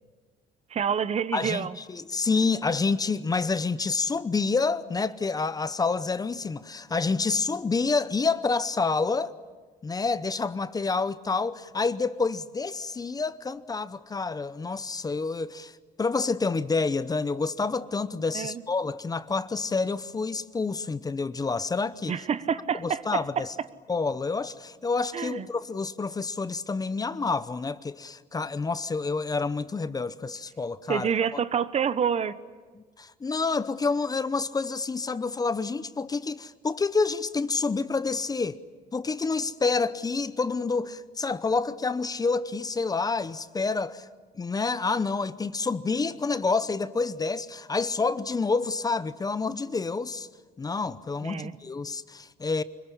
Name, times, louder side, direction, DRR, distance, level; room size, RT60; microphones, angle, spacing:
voice 1, 0.7-1.8 18.3-18.6 22.1-23.5 25.1-25.5 30.9-32.3 51.2-51.5, right 7 dB, 40° right, 1.1 m, -28 dB
voice 2, 1.3-9.3 9.8-15.7 16.0-22.1 22.8-23.5 23.9-31.1 33.0-38.6 38.9-44.1 44.4-50.3 50.6-52.6, left 4 dB, 20° left, 0.8 m, -28 dB
25.0 x 22.0 x 10.0 m
cardioid pair, 110°, 17 cm